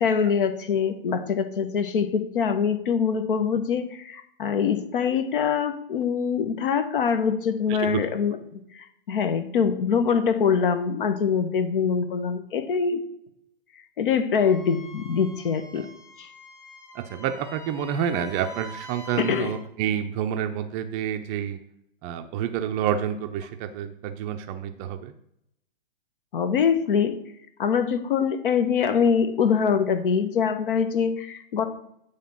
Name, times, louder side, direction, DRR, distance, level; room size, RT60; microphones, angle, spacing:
voice 1, 0.0-8.4 8.7-13.0 14.0-15.9 16.2-16.3 19.2-19.5 26.3-27.2 27.6-31.7, left 6 dB, 60° left, 9 dB, 1.1 m, -24 dB
voice 2, 7.7-8.1 16.9-21.6 22.0-25.1, right 9 dB, 25° right, 8 dB, 0.5 m, -29 dB
Wind instrument woodwind instrument, 14.3-19.6, left 1 dB, 10° left, 1.1 m, -45 dB
9.0 x 3.4 x 5.4 m, 0.75 s
hypercardioid pair, 115°, 29 cm